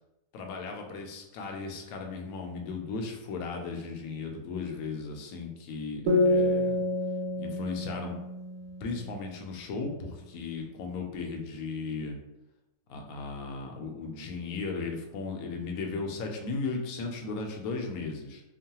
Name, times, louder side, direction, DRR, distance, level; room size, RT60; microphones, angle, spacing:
voice 1, 0.3-6.8 7.4-8.1 8.8-12.2 12.9-18.4, left 4 dB, 70° left, 2 dB, 0.9 m, -36 dB
sound 1, 6.1-9.5, left 1 dB, 80° right, 1.2 m, -28 dB
3.0 x 2.1 x 2.8 m, 0.92 s
omnidirectional pair, 1.8 m